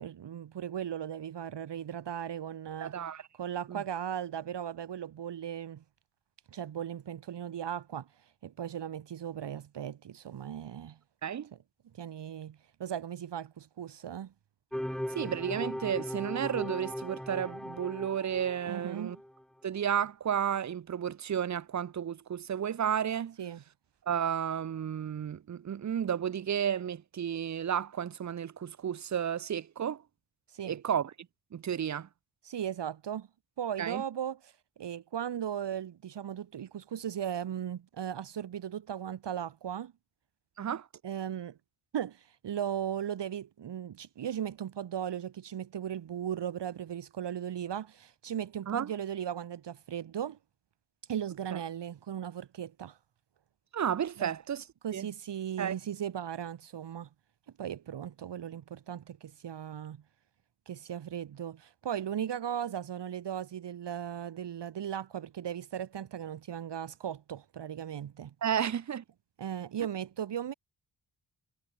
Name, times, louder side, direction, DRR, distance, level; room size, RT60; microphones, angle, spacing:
voice 1, 0.0-3.0 3.3-5.8 6.5-8.1 8.4-11.0 11.5-11.6 12.0-14.3 18.7-19.2 23.4-23.6 30.5-30.8 32.4-33.3 33.6-34.5 34.8-39.9 41.0-41.6 41.9-50.4 51.1-53.0 54.2-54.3 54.8-57.1 57.6-60.0 60.7-68.3 69.4-70.5, right 9 dB, 70° right, 1.3 m, -37 dB
voice 2, 2.8-3.2 3.7-3.8 11.2-11.5 15.1-19.2 19.6-23.4 24.1-30.0 30.6-31.1 31.5-32.1 33.8-34.0 40.6-40.9 48.7-48.9 51.5-51.6 53.7-54.6 54.9-55.1 55.6-55.7 68.4-69.0, right 9 dB, 40° right, 0.6 m, -32 dB
sound 1, 14.7-19.3, equal, ahead, 0.3 m, -38 dB
cardioid pair, 60°, 44 cm